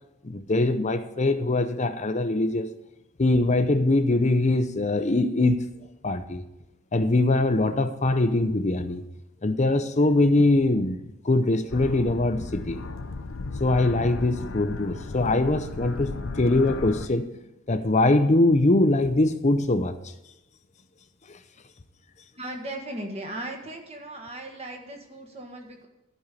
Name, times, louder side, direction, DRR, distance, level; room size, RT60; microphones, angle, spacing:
voice 1, 0.2-2.7 3.2-5.7 6.0-6.4 6.9-9.0 9.4-11.0 11.2-12.8 13.6-17.3 17.7-20.0 21.3-21.4, left 2 dB, 35° left, 9 dB, 0.7 m, -22 dB
sound 1, 11.7-17.1, left 3 dB, 80° left, 0.7 m, -35 dB
voice 2, 22.3-25.9, right 1 dB, 30° right, 3 dB, 1.6 m, -37 dB
12.0 x 5.5 x 8.3 m, 0.92 s
head